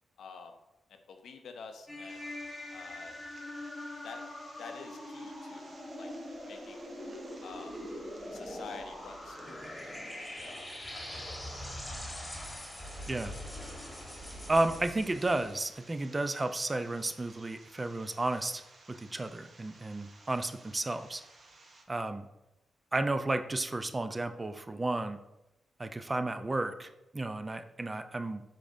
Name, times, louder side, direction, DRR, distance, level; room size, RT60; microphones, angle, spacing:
voice 1, 0.2-0.5 0.9-2.2 2.7-3.2 4.0-4.2 4.6-6.1 6.5-6.8 7.4-7.7 8.3-12.6, left 5 dB, 75° left, 6 dB, 0.5 m, -49 dB
sound 1, 1.9-15.6, left 1 dB, 10° left, 1.3 m, -43 dB
sound 2, 2.1-21.9, right 2 dB, 50° right, 0.7 m, -57 dB
voice 2, 14.5-18.6 18.9-21.2 21.9-22.3 22.9-25.2 25.8-28.4, right 2 dB, 30° right, 9 dB, 0.4 m, -32 dB
5.2 x 3.8 x 2.6 m, 0.94 s
supercardioid pair, 55°, 0 cm